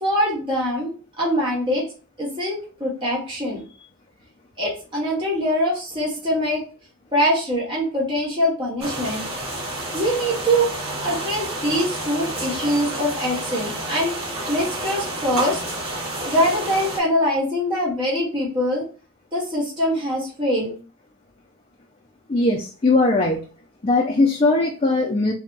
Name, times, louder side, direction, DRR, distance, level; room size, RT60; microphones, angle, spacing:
voice 1, 0.0-1.8 2.2-3.6 4.6-6.6 7.1-9.3 9.9-10.7 11.0-15.6 16.2-18.8 19.3-20.7, equal, 25° right, -4 dB, 1.2 m, -23 dB
sound 1, 8.8-17.0, right 1 dB, 85° right, 1.6 m, -30 dB
voice 2, 22.3-23.4 23.8-25.3, left 2 dB, 30° left, 0 dB, 0.4 m, -19 dB
3.4 x 2.2 x 3.8 m, 0.37 s
head